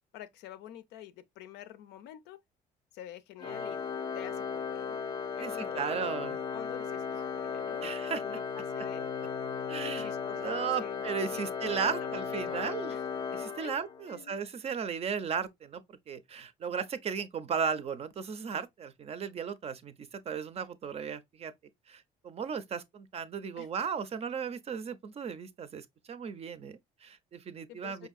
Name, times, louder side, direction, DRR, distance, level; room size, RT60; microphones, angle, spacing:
voice 1, 0.1-2.4 2.9-3.8 4.1-5.0 5.3-7.9 8.2-9.1 9.8-11.0 11.3-13.0 13.6-13.8 14.1-14.4 23.6-23.7 27.7-28.1, left 12 dB, 90° left, 0.5 m, -48 dB
Organ, 3.4-14.2, left 6 dB, 25° left, 0.4 m, -36 dB
voice 2, 5.4-6.4 7.8-8.2 9.7-12.9 13.3-21.5 21.9-28.1, right 6 dB, 35° right, 0.5 m, -36 dB
4.9 x 2.6 x 2.3 m
cardioid pair, 110°, 17 cm